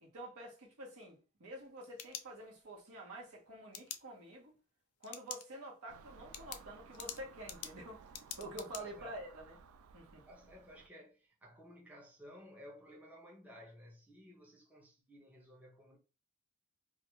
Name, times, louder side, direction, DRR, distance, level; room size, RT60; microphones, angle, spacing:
voice 1, 0.0-4.6 5.0-8.0 8.4-9.6 9.9-10.2, right 1 dB, 85° right, 1.0 m, -48 dB
sound 1, 1.6-2.8 3.7-4.0 5.0-5.4 5.8-5.9 6.3-8.8, left 10 dB, 80° left, 0.4 m, -46 dB
Car passing by / Engine, 5.9-10.9, right 5 dB, 70° right, 0.3 m, -58 dB
voice 2, 8.8-9.1 10.3-16.0, equal, 5° right, 0.6 m, -56 dB
2.3 x 2.3 x 2.9 m
head